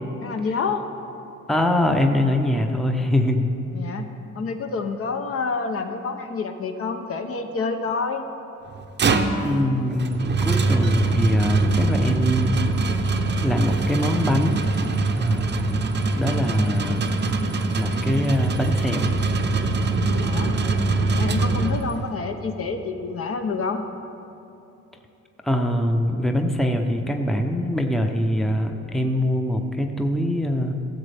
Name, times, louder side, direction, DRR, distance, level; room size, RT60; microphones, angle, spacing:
voice 1, 0.2-0.8 3.7-8.3 20.1-20.6 21.1-23.8, left 4 dB, 50° left, 6 dB, 0.8 m, -28 dB
voice 2, 1.5-3.5 9.4-12.6 13.4-14.6 15.2-17.0 17.8-19.1 25.4-30.7, left 1 dB, ahead, 4 dB, 0.7 m, -23 dB
sound 1, 8.7-22.1, right 3 dB, 35° right, 0.7 m, -23 dB
15.0 x 7.4 x 3.4 m, 2.9 s
cardioid pair, 90°, 30 cm